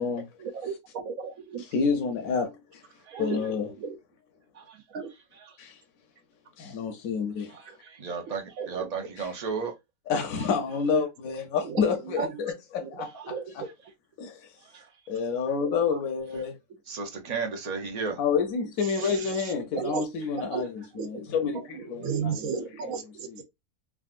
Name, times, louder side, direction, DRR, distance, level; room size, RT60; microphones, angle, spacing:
voice 1, 0.4-1.6 3.1-4.0 4.9-5.1 7.7-7.8 8.6-8.9 11.6-12.3 12.8-12.9 13.2-13.7 15.6-16.0 18.8-20.1 20.4-20.6 20.9-21.1 21.4-21.5 21.7-23.4, right 6 dB, 70° right, 0.9 m, -34 dB
voice 2, 1.6-2.8 3.2-3.7 5.6-5.8 6.6-7.5 10.1-13.6 14.2-14.5 15.1-16.6 18.2-22.4 23.3-23.4, left 5 dB, 75° left, 1.0 m, -29 dB
voice 3, 3.0-3.5 4.5-4.8 5.1-5.6 7.5-9.7 10.4-10.5 13.0-13.3 13.6-13.9 14.6-15.0 15.5-15.6 16.3-16.5 16.9-18.2, right 5 dB, 55° right, 0.4 m, -36 dB
3.6 x 2.3 x 2.4 m
omnidirectional pair, 1.6 m